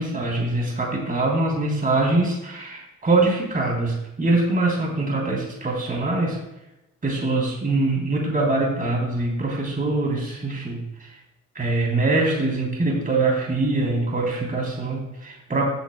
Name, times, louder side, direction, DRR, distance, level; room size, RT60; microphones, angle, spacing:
voice 1, 0.0-6.4 7.0-11.1 11.6-15.7, right 2 dB, 30° right, -1 dB, 3.3 m, -23 dB
15.5 x 8.6 x 2.3 m, 0.93 s
cardioid pair, 90°, 30 cm